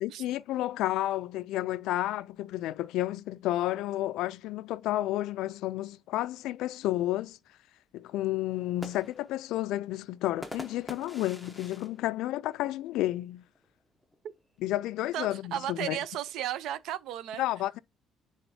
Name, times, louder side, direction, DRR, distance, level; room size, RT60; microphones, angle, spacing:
voice 1, 0.0-7.4 7.9-13.4 14.6-16.0 17.4-17.8, left 15 dB, 75° left, 0.3 m, -31 dB
sound 1, 8.5-13.2 13.6-13.7 13.9-14.4 15.3-16.8, equal, ahead, 0.7 m, -47 dB
voice 2, 15.1-17.4, right 11 dB, 65° right, 0.5 m, -34 dB
10.0 x 3.5 x 2.7 m
cardioid pair, 175°, 0 cm